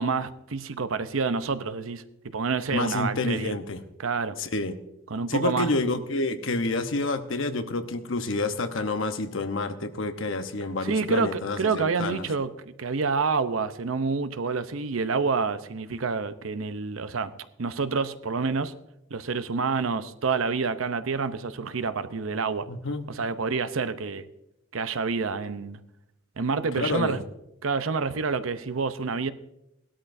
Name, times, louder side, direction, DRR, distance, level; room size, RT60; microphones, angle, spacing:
voice 1, 0.0-2.0 2.3-3.6 4.0-4.4 5.1-5.7 10.8-12.5 12.8-17.3 17.6-18.7 19.1-22.7 23.1-24.2 24.7-25.8 26.4-27.2 27.6-29.3, right 4 dB, 90° right, 11 dB, 0.7 m, -28 dB
voice 2, 2.7-3.8 4.4-4.8 5.3-12.3 22.7-23.1 26.8-27.2, left 2 dB, 75° left, 8 dB, 1.0 m, -29 dB
18.0 x 12.5 x 2.6 m, 0.84 s
head